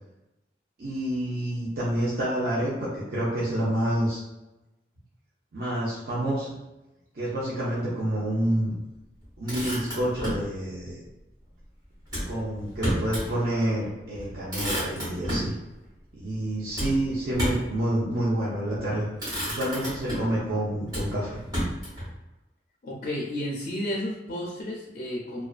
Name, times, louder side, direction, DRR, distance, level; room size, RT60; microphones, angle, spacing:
voice 1, 0.8-4.2 5.5-6.5 7.1-8.7 9.4-11.0 12.3-15.5 16.2-19.1 19.4-21.4, right 1 dB, 55° right, -8 dB, 0.5 m, -28 dB
Motor vehicle (road), 9.2-10.5 12.1-13.3 13.7-13.8 14.1-15.5 16.7-17.7 18.6-18.8 19.2-20.4 20.9-22.1, equal, 20° right, 1.1 m, -31 dB
voice 2, 22.8-25.4, left 1 dB, 45° left, -4 dB, 0.4 m, -32 dB
2.3 x 2.2 x 2.3 m, 0.96 s
head